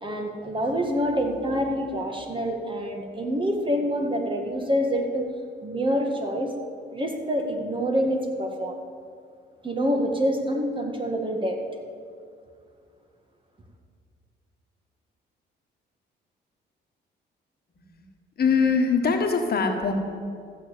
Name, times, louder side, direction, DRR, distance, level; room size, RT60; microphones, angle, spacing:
voice 1, 0.0-5.2 5.6-6.5 6.9-8.8 9.6-11.6, equal, 25° right, 2 dB, 1.9 m, -26 dB
voice 2, 18.4-19.9, left 5 dB, 50° left, 4 dB, 1.6 m, -22 dB
14.0 x 6.8 x 8.4 m, 2.3 s
cardioid pair, 90°, 20 cm